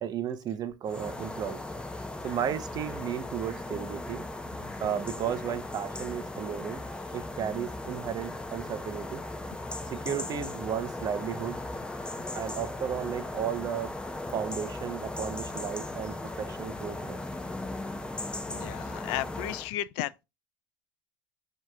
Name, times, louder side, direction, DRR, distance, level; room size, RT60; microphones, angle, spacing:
voice 1, 0.0-1.6 2.2-4.2 4.8-6.8 7.1-9.2 9.9-11.6 12.3-13.9 14.3-17.2, right 9 dB, 35° right, 0.6 m, -34 dB
sound 1, 0.8-19.7, left 2 dB, 10° left, 0.7 m, -37 dB
voice 2, 18.4-20.2, left 14 dB, 60° left, 0.4 m, -34 dB
7.2 x 2.9 x 2.2 m
supercardioid pair, 105°, 11 cm